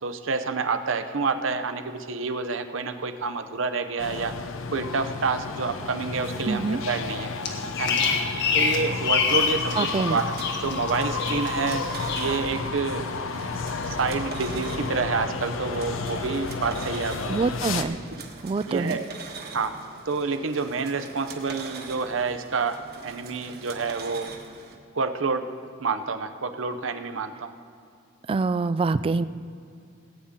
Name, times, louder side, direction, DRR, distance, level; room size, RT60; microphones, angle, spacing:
voice 1, 0.0-4.4 4.7-7.3 7.8-8.0 8.5-10.3 10.6-11.9 12.2-13.1 13.7-17.4 18.7-19.1 19.5-19.7 20.1-24.3 24.9-27.5, right 4 dB, 70° right, 9 dB, 0.7 m, -28 dB
sound 1, 4.0-17.8, left 4 dB, 80° left, 0.7 m, -32 dB
voice 2, 6.5-6.8 9.8-10.2 17.3-18.0 18.4-19.0 28.3-29.3, right 4 dB, 30° right, 15 dB, 0.3 m, -25 dB
Bird vocalization bird call bird song, 7.5-10.0 10.3-10.9 11.2-11.7 12.1-12.3, left 6 dB, 65° left, 1.3 m, -25 dB
sound 2, 9.3-24.8, right 4 dB, 50° right, 1.3 m, -43 dB
18.5 x 8.9 x 3.7 m, 2.4 s
head